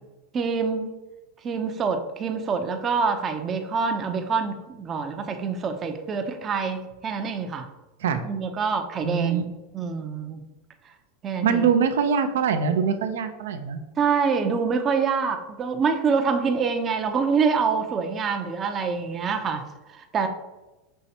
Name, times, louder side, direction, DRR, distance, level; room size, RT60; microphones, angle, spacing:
voice 1, 0.3-0.9 1.4-7.7 8.2-9.4 9.7-10.4 10.8-10.9 11.2-11.6 14.0-20.3, right 5 dB, 30° right, 5 dB, 0.5 m, -26 dB
voice 2, 9.0-9.4 11.4-13.8, right 6 dB, 80° right, 8 dB, 0.5 m, -23 dB
5.5 x 3.1 x 2.8 m, 1.1 s
hypercardioid pair, 110°, 0 cm